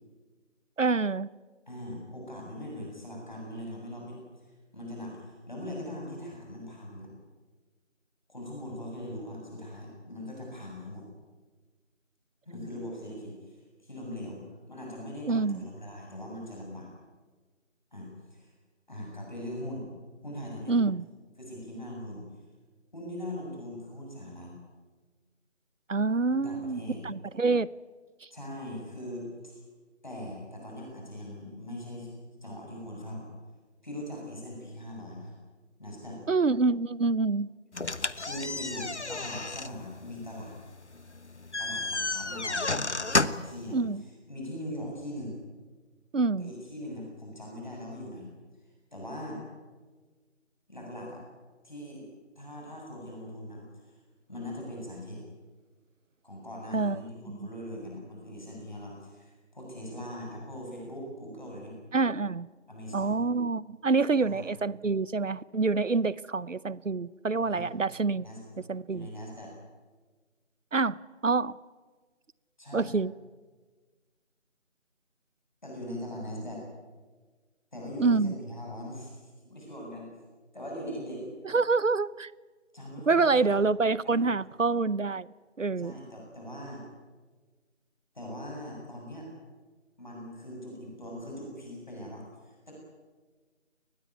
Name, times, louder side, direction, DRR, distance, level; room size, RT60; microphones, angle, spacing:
voice 1, 0.8-1.3 15.3-15.6 20.7-21.0 25.9-27.7 36.3-37.5 43.7-44.0 46.1-46.5 56.7-57.0 57.3-57.4 61.9-62.5 62.9-68.3 68.7-69.1 70.7-71.0 71.2-71.6 72.7-73.1 78.0-78.3 81.4-82.3 83.1-85.3 85.6-86.0, right 4 dB, 85° right, 0.9 m, -26 dB
voice 2, 1.7-7.1 8.3-11.1 12.5-16.9 17.9-18.5 18.9-19.9 20.2-20.8 21.4-22.2 22.9-24.5 26.3-27.1 28.3-29.6 30.0-32.1 32.4-33.3 33.8-35.3 35.8-36.2 38.2-40.6 41.6-45.4 46.4-48.3 48.9-49.4 50.7-51.2 51.6-52.0 52.4-54.0 54.3-55.2 56.2-61.7 62.7-63.2 64.1-64.4 67.4-67.7 68.2-68.4 68.9-69.5 72.6-72.9 75.6-76.6 77.7-80.1 80.5-81.3 82.7-83.6 84.0-84.3 85.8-86.8 88.1-89.3 90.0-92.8, left 1 dB, 40° left, 7.4 m, -41 dB
sound 1, 37.7-43.6, left 3 dB, 65° left, 1.3 m, -32 dB
24.0 x 20.0 x 9.4 m
figure-of-eight pair, 180°, 37 cm